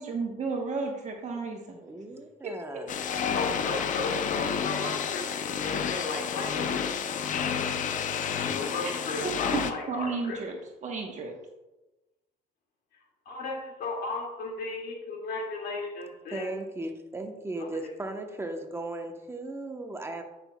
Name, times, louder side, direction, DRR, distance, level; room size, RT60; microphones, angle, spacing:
voice 1, 0.0-1.8 2.4-2.5 9.2-11.4, right 4 dB, 45° right, 2 dB, 1.0 m, -33 dB
voice 2, 1.8-2.9 16.3-20.2, right 2 dB, 15° right, 4 dB, 0.9 m, -36 dB
sound 1, 2.9-9.7, left 7 dB, 50° left, 0.6 m, -30 dB
voice 3, 3.3-6.8 8.4-10.4 12.9-16.5 17.6-17.8, left 3 dB, 70° left, -1 dB, 2.1 m, -35 dB
9.5 x 5.9 x 2.2 m, 1.0 s
cardioid pair, 110°, 17 cm